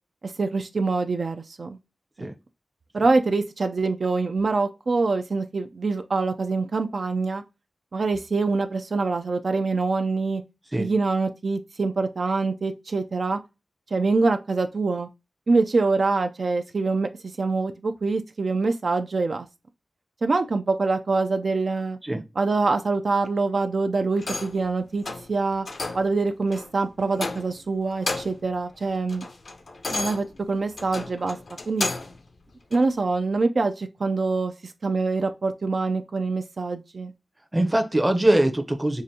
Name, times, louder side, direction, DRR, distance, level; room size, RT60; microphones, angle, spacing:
voice 1, 0.2-1.8 2.9-7.4 7.9-10.4 10.8-13.4 13.9-15.1 15.5-17.1 17.4-19.5 20.2-22.0 22.4-25.7 25.9-29.3 29.9-31.4 31.7-31.9 32.7-37.1, right 3 dB, 60° right, 0.3 m, -25 dB
sound 1, 24.2-24.6 25.0-25.3 25.7-26.1 26.5-26.7 27.1-27.6 27.9-28.5 28.9-32.2 32.7-32.8, left 3 dB, 65° left, 0.6 m, -32 dB
voice 2, 37.5-39.0, right 1 dB, 15° right, 0.6 m, -22 dB
4.8 x 2.5 x 2.7 m
wide cardioid pair, 105°, 0 cm